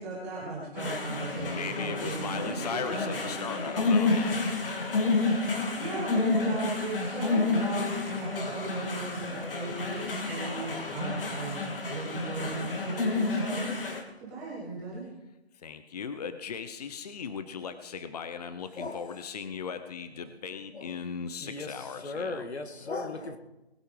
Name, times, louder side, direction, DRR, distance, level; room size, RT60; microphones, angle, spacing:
voice 1, 0.0-4.2 5.0-11.6 11.9-15.0, right 2 dB, 5° right, -6 dB, 0.5 m, -37 dB
sound 1, 0.8-14.0, left 3 dB, 55° left, 2.5 m, -30 dB
voice 2, 1.4-4.9 15.5-22.5, left 6 dB, 40° left, 10 dB, 0.8 m, -38 dB
voice 3, 21.4-21.7 22.0-23.4, left 3 dB, 75° left, 7 dB, 2.0 m, -36 dB
20.0 x 8.1 x 5.1 m, 1.0 s
figure-of-eight pair, 155°, 32 cm